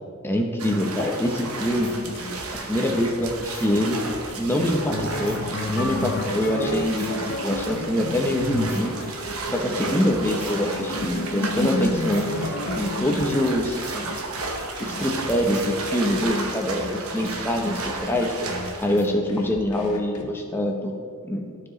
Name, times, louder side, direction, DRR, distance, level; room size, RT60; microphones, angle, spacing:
voice 1, 0.2-1.9 2.7-4.0 4.3-5.4 5.7-9.0 9.5-12.3 12.7-13.8 14.8-18.3 18.8-20.9 21.2-21.5, left 1 dB, 10° left, 2 dB, 0.8 m, -24 dB
sound 1, 0.6-19.1, right 3 dB, 75° right, 0.9 m, -33 dB
sound 2, 1.7-16.3 16.7-20.2, left 2 dB, 90° left, 1.0 m, -39 dB
sound 3, 4.4-13.7, left 1 dB, 45° left, 0.5 m, -31 dB
14.0 x 4.9 x 3.1 m, 2.2 s
head